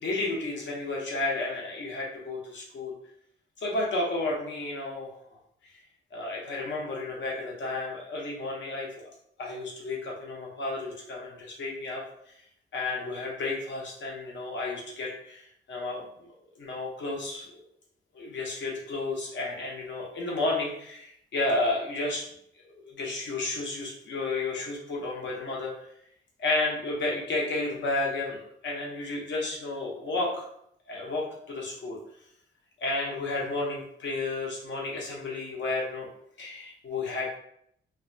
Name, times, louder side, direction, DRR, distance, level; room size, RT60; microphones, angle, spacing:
voice 1, 0.0-2.9 3.6-5.1 6.1-8.9 9.4-12.0 12.7-16.3 16.5-17.5 18.1-22.2 22.8-25.7 26.4-30.4 30.9-32.0 32.8-36.1 36.4-37.4, left 2 dB, 60° left, -2 dB, 0.8 m, -32 dB
2.6 x 2.2 x 2.5 m, 0.71 s
wide cardioid pair, 150°, 21 cm